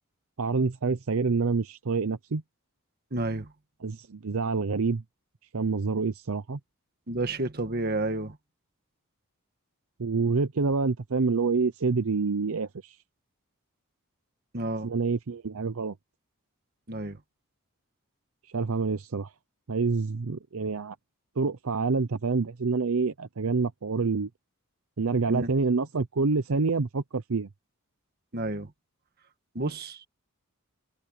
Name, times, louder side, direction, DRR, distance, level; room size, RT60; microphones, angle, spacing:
voice 1, 0.4-2.4 3.8-5.0 5.5-6.6 10.0-13.0 14.8-15.9 18.5-19.3 19.7-20.9 21.4-24.3 25.0-27.5, right 4 dB, 70° right, 0.7 m, -27 dB
voice 2, 3.1-3.5 7.1-8.4 14.5-14.9 16.9-17.2 25.3-25.5 28.3-28.7 29.5-30.1, right 2 dB, 45° right, 1.5 m, -30 dB
head